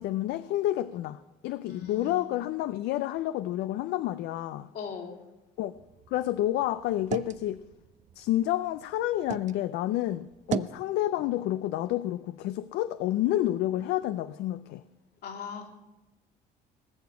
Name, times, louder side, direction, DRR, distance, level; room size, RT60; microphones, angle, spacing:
voice 1, 0.0-4.7 5.6-5.7 6.1-7.6 8.2-14.8, left 14 dB, 80° left, 0.5 m, -29 dB
voice 2, 1.7-2.3 4.7-5.2 15.2-15.7, left 5 dB, 65° left, 2.9 m, -39 dB
sound 1, 5.7-9.6 10.0-10.8, right 10 dB, 45° right, 0.5 m, -38 dB
19.0 x 7.0 x 7.9 m
cardioid pair, 110°, 17 cm